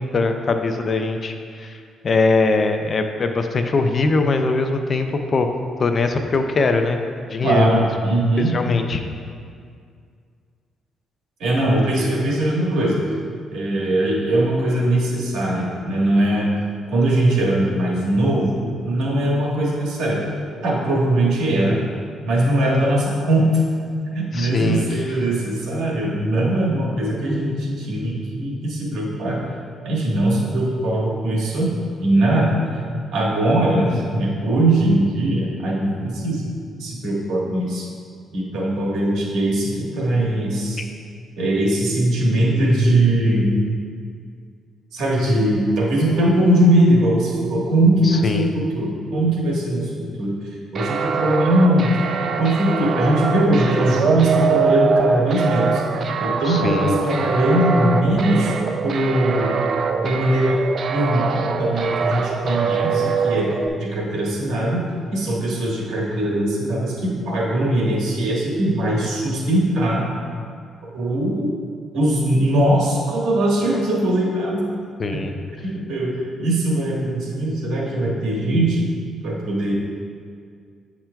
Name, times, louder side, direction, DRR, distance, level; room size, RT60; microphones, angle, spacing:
voice 1, 0.1-1.8 2.0-5.5 5.8-7.0 7.3-7.7 8.4-9.0 24.3-25.1 48.0-48.5 56.5-57.0 75.0-75.3, left 3 dB, 45° left, 6 dB, 0.5 m, -21 dB
voice 2, 7.4-8.5 11.4-13.0 13.5-16.5 16.9-20.3 20.6-21.8 22.3-23.6 24.1-29.4 29.8-31.7 32.0-32.6 33.1-36.5 36.8-37.9 38.3-40.8 41.4-43.5 44.9-52.1 52.4-55.8 56.2-58.5 58.8-59.5 59.9-64.8 65.1-70.1 70.9-71.5 71.9-74.7 75.1-75.2 75.6-78.8 79.2-79.7, right 1 dB, 80° right, -3 dB, 1.4 m, -20 dB
sound 1, 50.7-63.7, right 5 dB, 55° right, 0.4 m, -23 dB
8.5 x 5.9 x 2.3 m, 2.2 s
cardioid pair, 90°, 0 cm